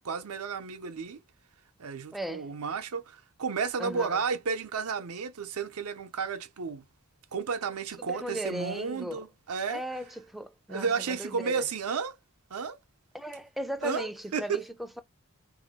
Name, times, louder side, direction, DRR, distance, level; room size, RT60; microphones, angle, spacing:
voice 1, 0.0-1.2 1.8-6.8 7.3-9.8 10.7-12.2 12.5-12.8 13.8-14.6, right 5 dB, 85° right, 0.6 m, -32 dB
voice 2, 2.1-2.5 3.8-4.2 8.0-9.2 9.7-11.6 13.1-15.0, right 1 dB, ahead, 0.4 m, -37 dB
2.9 x 2.7 x 4.1 m
head